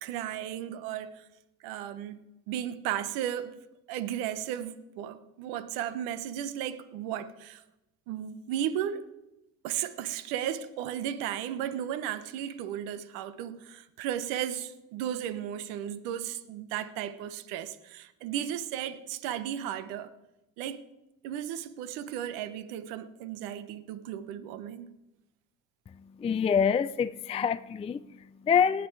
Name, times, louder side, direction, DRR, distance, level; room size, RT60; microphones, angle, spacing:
voice 1, 0.0-1.2 1.6-2.2 2.5-3.6 3.9-7.6 8.1-9.1 9.6-20.1 20.6-20.8 21.2-24.9, right 10 dB, 85° right, 1.0 m, -35 dB
voice 2, 25.9-28.9, left 7 dB, 20° left, 0.3 m, -27 dB
18.0 x 8.6 x 4.7 m
supercardioid pair, 80°, 35 cm